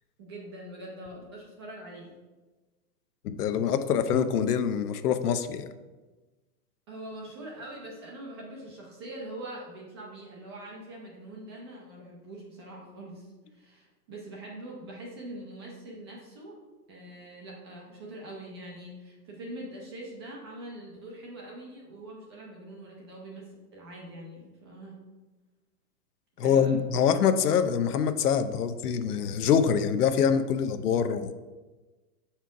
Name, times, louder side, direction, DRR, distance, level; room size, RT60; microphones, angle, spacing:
voice 1, 0.2-2.1 6.9-16.6 16.9-24.9 26.4-26.9, right 1 dB, 20° right, -3 dB, 0.5 m, -43 dB
voice 2, 3.2-5.7 26.4-31.4, left 7 dB, 75° left, 9 dB, 0.7 m, -25 dB
6.1 x 4.4 x 4.6 m, 1.2 s
hypercardioid pair, 165°, 46 cm